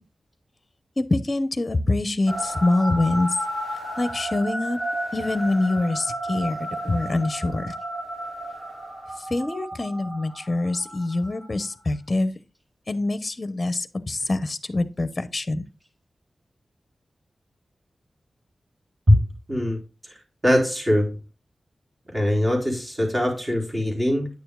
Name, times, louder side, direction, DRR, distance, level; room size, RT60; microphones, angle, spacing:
voice 1, 1.0-3.3 4.0-4.8 5.1-6.6 6.8-7.7 9.3-12.3 12.9-15.6, left 2 dB, 35° left, 0.7 m, -25 dB
sound 1, 2.3-11.7, right 1 dB, 70° right, 3.8 m, -33 dB
voice 2, 19.5-19.8 20.4-21.2 22.1-24.3, left 1 dB, 30° right, 3.7 m, -21 dB
9.4 x 6.9 x 2.3 m
wide cardioid pair, 85°, 0 cm